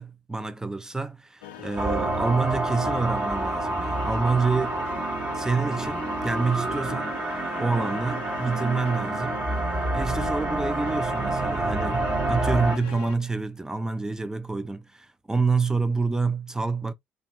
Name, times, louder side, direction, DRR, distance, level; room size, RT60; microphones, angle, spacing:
voice 1, 0.0-4.8 5.3-7.1 7.6-9.4 9.9-16.9, right 4 dB, 10° right, 0.4 m, -27 dB
sound 1, 1.4-13.2, left 9 dB, 70° left, 0.4 m, -40 dB
sound 2, 1.8-12.8, right 2 dB, 30° right, 0.9 m, -28 dB
2.6 x 2.2 x 2.2 m
figure-of-eight pair, 50°, 6 cm